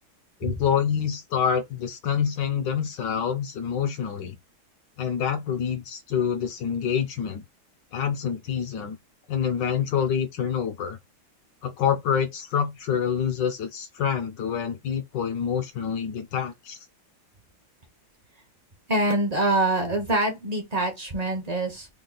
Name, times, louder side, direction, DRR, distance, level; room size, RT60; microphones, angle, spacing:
voice 1, 0.4-4.4 5.0-7.4 7.9-9.0 9.3-11.0 11.6-16.8, left 8 dB, 70° left, 1.2 m, -27 dB
voice 2, 18.9-21.9, right 1 dB, 45° right, 0.5 m, -25 dB
3.6 x 2.3 x 3.7 m
omnidirectional pair, 2.2 m